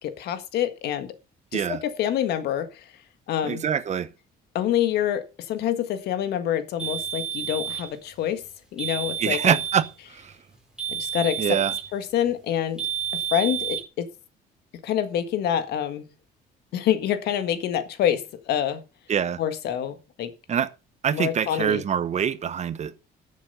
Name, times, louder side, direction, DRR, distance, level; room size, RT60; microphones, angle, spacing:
voice 1, 0.0-1.1 1.5-2.7 3.3-3.6 4.5-8.4 8.7-9.6 10.9-11.4 11.9-12.8 13.1-14.1 14.8-16.1 16.7-18.8 19.4-20.3 21.1-21.8, left 10 dB, 75° left, 1.7 m, -26 dB
voice 2, 3.4-4.1 9.2-9.8 10.1-10.3 11.4-11.7 19.1-19.4 20.5-20.7 21.0-22.9, right 8 dB, 45° right, 1.0 m, -24 dB
sound 1, 6.8-7.9 8.8-9.9 10.8-11.9 12.8-13.8, right 8 dB, 5° right, 4.0 m, -30 dB
12.5 x 7.4 x 5.6 m
cardioid pair, 110°, 17 cm